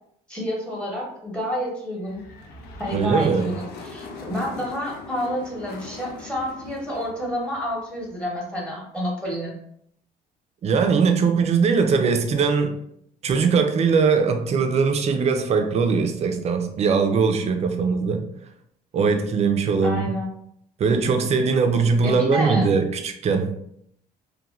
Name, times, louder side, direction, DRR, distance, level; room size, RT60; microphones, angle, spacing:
voice 1, 0.3-2.2 2.8-9.5 19.8-20.3 22.0-22.7, equal, 5° left, -3 dB, 0.9 m, -29 dB
sound 1, 2.0-8.4, left 3 dB, 70° left, 0.5 m, -41 dB
voice 2, 2.9-3.5 10.6-12.7 13.2-18.2 18.9-20.1 20.8-23.5, right 5 dB, 40° right, 6 dB, 0.4 m, -21 dB
2.9 x 2.2 x 2.3 m, 0.71 s
cardioid pair, 110°, 17 cm